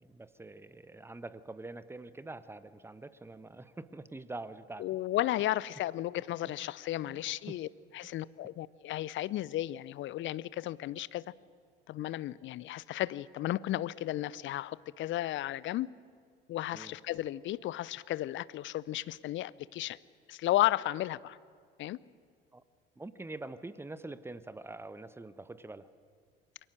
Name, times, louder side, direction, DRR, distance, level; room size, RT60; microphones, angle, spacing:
voice 1, 0.0-4.9 6.4-6.5 7.0-7.6 16.7-16.9 22.5-22.6 23.0-25.9, right 2 dB, 10° right, 15 dB, 1.0 m, -45 dB
voice 2, 4.8-7.7 7.9-11.2 11.9-15.9 16.5-20.0 20.3-21.4 21.8-22.0, left 14 dB, 40° left, 20 dB, 0.6 m, -34 dB
28.0 x 22.5 x 6.6 m, 2.1 s
figure-of-eight pair, 65°, 30 cm